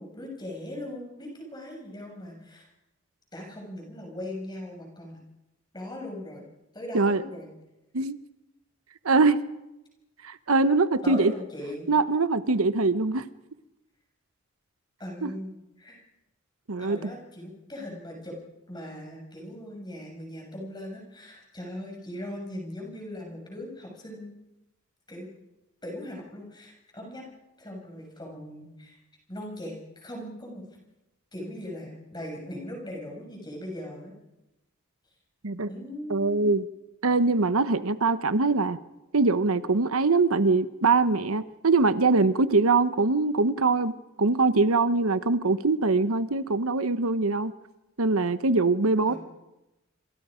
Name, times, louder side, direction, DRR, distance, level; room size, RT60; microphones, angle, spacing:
voice 1, 0.0-2.7 3.3-5.2 5.7-6.4 6.7-7.5 11.0-11.9 15.0-16.0 16.8-18.3 18.7-24.3 25.1-25.3 25.8-27.3 27.6-29.0 29.3-30.6 31.3-34.1 35.7-36.5 49.1-49.2, left 1 dB, 20° left, 0 dB, 6.4 m, -39 dB
voice 2, 9.0-9.4 10.2-11.3 11.9-13.2 15.2-15.3 16.7-17.1 35.4-35.7 36.1-36.6 37.0-38.8 39.1-43.9 44.2-47.5 48.0-49.1, right 3 dB, 85° right, 13 dB, 1.0 m, -23 dB
27.0 x 26.0 x 5.1 m, 0.98 s
head